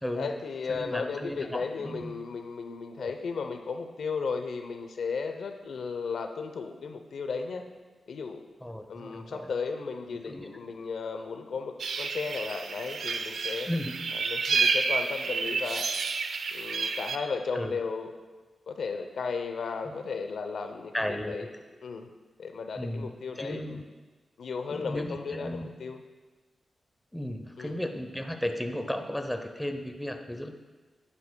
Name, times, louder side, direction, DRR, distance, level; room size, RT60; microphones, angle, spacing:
voice 1, 0.2-7.7 8.1-8.4 8.9-13.7 14.1-15.9 16.5-18.1 18.7-21.5 21.8-22.1 22.4-23.8 24.4-26.0 27.6-27.8, left 5 dB, 75° left, 6 dB, 0.6 m, -35 dB
voice 2, 0.7-2.1 3.0-3.1 8.6-9.5 10.3-10.5 13.7-14.0 17.5-17.8 19.9-20.0 20.9-21.3 22.8-23.8 24.7-25.7 27.1-30.5, left 1 dB, 5° left, 5 dB, 0.7 m, -35 dB
sound 1, 11.8-17.2, right 4 dB, 70° right, 0.5 m, -30 dB
11.5 x 9.8 x 2.2 m, 1.3 s
wide cardioid pair, 100°, 0 cm